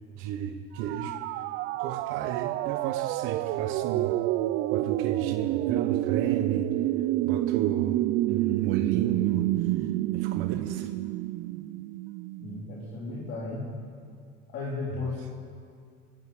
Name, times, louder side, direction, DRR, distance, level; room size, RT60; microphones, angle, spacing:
voice 1, 0.2-1.2 1.8-4.2 4.7-6.7 7.2-9.9 10.1-10.9 15.0-15.1, right 9 dB, 80° right, 7 dB, 0.9 m, -33 dB
sound 1, 0.8-12.6, right 16 dB, 65° right, 0.5 m, -28 dB
voice 2, 12.4-13.7 14.5-15.3, left 3 dB, 55° left, -5 dB, 3.6 m, -35 dB
21.5 x 7.7 x 8.4 m, 2.3 s
cardioid pair, 140°, 21 cm